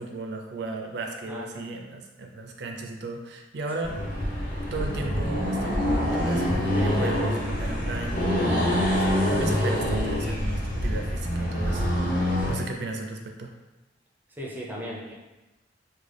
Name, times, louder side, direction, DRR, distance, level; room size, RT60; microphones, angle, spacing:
voice 1, 0.0-4.0 4.7-13.5, right 2 dB, 60° right, 2 dB, 0.4 m, -35 dB
voice 2, 1.3-1.6 7.8-7.9 12.5-12.6 14.4-15.1, equal, 10° right, -3 dB, 0.5 m, -37 dB
Accelerating revving vroom, 3.8-12.6, equal, 50° left, 1.0 m, -25 dB
3.6 x 2.2 x 3.3 m, 1.1 s
head